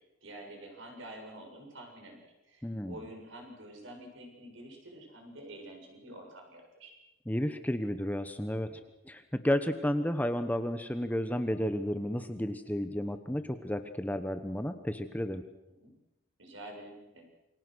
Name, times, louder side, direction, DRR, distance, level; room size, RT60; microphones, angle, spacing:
voice 1, 0.2-6.9 15.8-15.9 16.4-17.2, right 1 dB, 65° right, 2 dB, 7.0 m, -48 dB
voice 2, 2.6-3.0 7.3-15.4, equal, 10° left, 9 dB, 1.1 m, -32 dB
28.0 x 23.5 x 6.3 m, 0.95 s
head